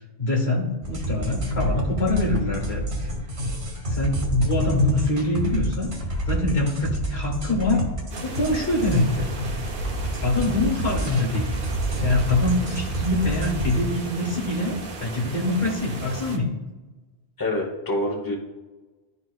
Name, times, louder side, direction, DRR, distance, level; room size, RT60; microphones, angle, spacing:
voice 1, 0.2-2.8 3.9-5.9 6.3-7.9 8.2-9.3 10.2-11.5 12.0-16.5, left 2 dB, 70° left, 0 dB, 1.6 m, -24 dB
sound 1, 0.8-13.8, right 1 dB, 75° right, 1.5 m, -28 dB
sound 2, 8.1-16.4, right 3 dB, 55° right, 0.9 m, -36 dB
voice 2, 17.4-18.4, left 1 dB, 20° left, -1 dB, 1.0 m, -26 dB
11.5 x 4.0 x 2.4 m, 1.2 s
omnidirectional pair, 1.1 m